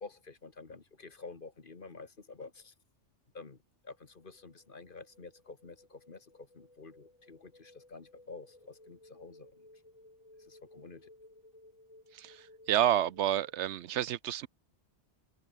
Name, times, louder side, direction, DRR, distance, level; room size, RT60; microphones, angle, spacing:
voice 1, 0.0-2.7 3.3-9.5 10.4-11.1, left 4 dB, 50° left, 1.9 m, -49 dB
sound 1, 4.0-13.9, left 1 dB, 30° left, 3.3 m, -59 dB
voice 2, 12.1-14.5, right 11 dB, 75° right, 0.9 m, -30 dB
open air
omnidirectional pair, 1.2 m